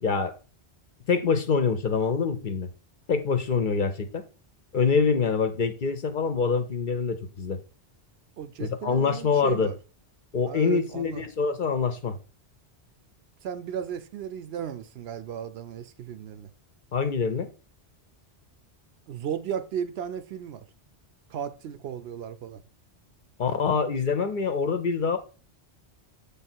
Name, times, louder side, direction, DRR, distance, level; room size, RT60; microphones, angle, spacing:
voice 1, 0.0-0.3 1.1-2.7 3.1-4.2 4.7-7.6 8.6-9.7 10.3-12.2 16.9-17.5 23.4-25.2, left 5 dB, 55° left, 0.7 m, -25 dB
voice 2, 8.4-9.8 10.5-11.2 13.4-16.5 19.1-20.7 21.3-22.6, right 8 dB, 70° right, 0.8 m, -35 dB
7.0 x 3.5 x 4.3 m
omnidirectional pair, 1.1 m